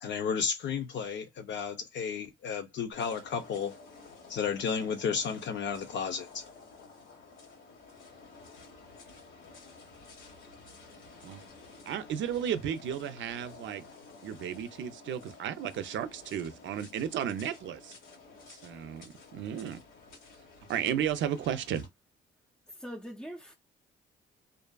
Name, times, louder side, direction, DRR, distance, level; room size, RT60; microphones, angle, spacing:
voice 1, 0.0-3.7 4.3-6.4, left 6 dB, 65° left, 0.6 m, -33 dB
sound 1, 2.9-21.9, left 4 dB, 90° left, 1.4 m, -52 dB
voice 2, 11.9-13.8 14.2-17.9 18.5-19.8 20.7-21.9, right 9 dB, 70° right, 0.5 m, -34 dB
voice 3, 22.7-23.5, equal, 5° left, 0.5 m, -42 dB
2.5 x 2.4 x 2.2 m
cardioid pair, 90°, 20 cm